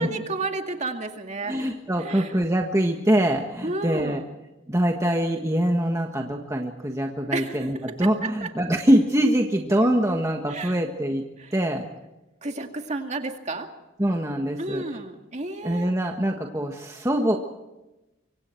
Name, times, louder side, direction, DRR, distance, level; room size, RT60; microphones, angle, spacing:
voice 1, 0.0-1.6 2.0-2.3 3.6-4.3 7.3-7.8 8.4-8.5 10.5-10.8 11.4-11.5 12.4-13.7 14.6-15.9, right 2 dB, 35° right, 4 dB, 2.2 m, -31 dB
voice 2, 1.4-4.2 4.7-11.2 11.5-11.9 14.0-14.8 15.6-17.4, right 1 dB, 15° right, 2 dB, 1.5 m, -24 dB
25.0 x 25.0 x 4.6 m, 0.99 s
head